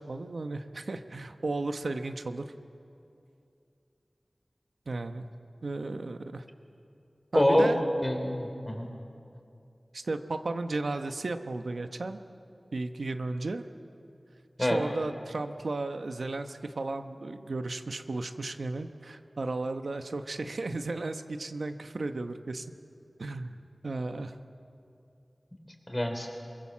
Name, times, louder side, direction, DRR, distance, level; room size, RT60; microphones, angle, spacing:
voice 1, 0.0-2.4 4.9-5.2 5.6-6.4 7.3-7.8 9.9-12.2 12.7-13.6 14.6-22.7 23.2-23.6 23.8-24.4, right 2 dB, 90° right, 7 dB, 1.0 m, -34 dB
voice 2, 7.3-7.7 8.0-8.9 14.6-14.8 25.9-26.3, left 1 dB, 20° left, 4 dB, 3.7 m, -25 dB
24.5 x 23.0 x 7.4 m, 2.6 s
wide cardioid pair, 70°, 0 cm